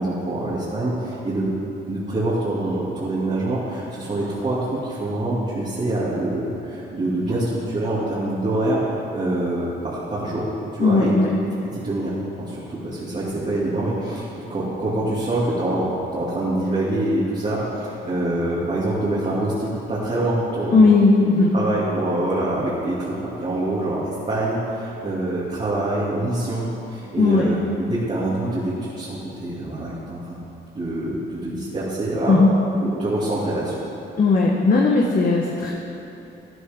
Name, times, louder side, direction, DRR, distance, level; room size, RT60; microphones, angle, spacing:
voice 1, 0.0-1.5 1.9-11.1 11.7-20.9 21.5-30.4 30.7-32.4 32.8-33.8, right 1 dB, 35° right, -9 dB, 2.6 m, -25 dB
voice 2, 10.8-11.3 20.7-21.5 27.2-27.5 32.3-32.5 34.2-35.7, left 3 dB, 45° left, -2 dB, 1.2 m, -16 dB
13.0 x 11.0 x 3.7 m, 2.9 s
cardioid pair, 90°, 20 cm